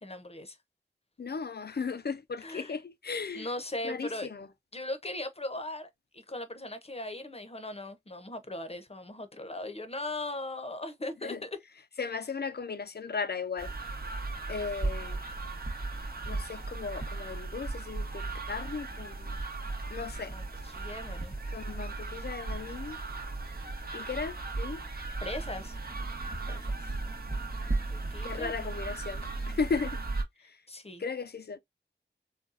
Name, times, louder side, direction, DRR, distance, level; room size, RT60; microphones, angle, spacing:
voice 1, 0.0-0.6 2.4-2.7 3.3-4.3 4.7-11.6 20.3-21.3 24.0-24.1 25.2-25.8 27.9-28.5 30.7-31.0, left 1 dB, 30° left, 0.8 m, -39 dB
voice 2, 1.2-3.5 3.8-4.5 11.2-11.4 12.0-13.7 14.5-15.2 16.3-19.4 19.9-20.4 21.5-23.0 23.9-24.8 26.5-26.7 28.2-30.0 30.4-30.6 31.0-31.6, left 5 dB, 55° left, 0.5 m, -36 dB
sound 1, 13.6-30.2, right 3 dB, 50° right, 0.9 m, -36 dB
4.0 x 2.2 x 2.5 m
wide cardioid pair, 45°, 20 cm